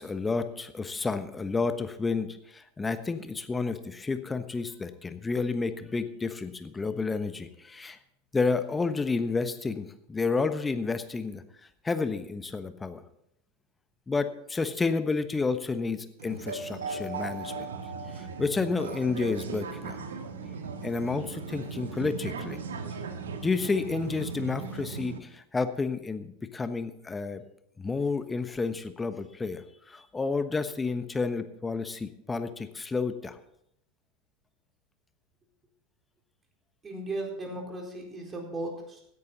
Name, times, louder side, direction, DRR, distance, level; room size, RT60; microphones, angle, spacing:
voice 1, 0.0-8.0 8.3-11.4 11.8-13.0 14.1-17.5 18.1-20.0 20.8-22.6 23.4-27.4 27.8-33.4, left 4 dB, 15° left, 10 dB, 1.1 m, -30 dB
sound 1, 16.2-25.2, right 4 dB, 75° right, 1.5 m, -37 dB
voice 2, 36.8-39.0, right 2 dB, 20° right, 1 dB, 4.2 m, -36 dB
16.5 x 11.0 x 4.1 m, 0.76 s
figure-of-eight pair, 85°, 0 cm